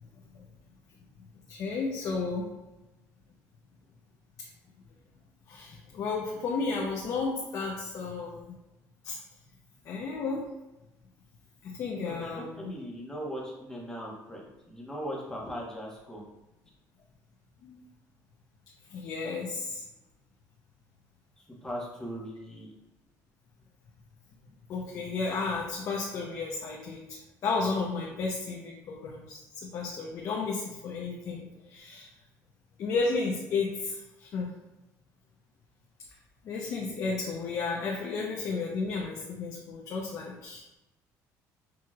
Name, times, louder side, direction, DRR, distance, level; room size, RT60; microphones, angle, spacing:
voice 1, 1.5-2.5 5.5-8.5 9.0-9.2 9.8-10.4 11.6-12.7 17.6-17.8 18.9-19.8 24.7-32.1 32.8-34.5 36.4-40.6, left 4 dB, 55° left, -2 dB, 0.7 m, -33 dB
voice 2, 12.0-16.2 21.4-22.7, equal, 10° left, -3 dB, 1.1 m, -39 dB
6.2 x 2.9 x 2.4 m, 0.99 s
cardioid pair, 130°, 7 cm